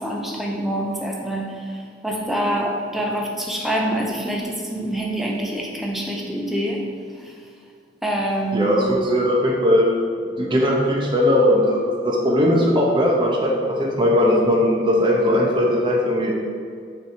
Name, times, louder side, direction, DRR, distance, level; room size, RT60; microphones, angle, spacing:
voice 1, 0.0-6.9 7.2-7.3 8.0-9.0, right 1 dB, ahead, -1 dB, 0.6 m, -26 dB
voice 2, 8.5-9.9 10.4-13.5 13.8-16.3, left 1 dB, 25° right, -3 dB, 0.9 m, -19 dB
6.9 x 3.4 x 4.6 m, 2.2 s
head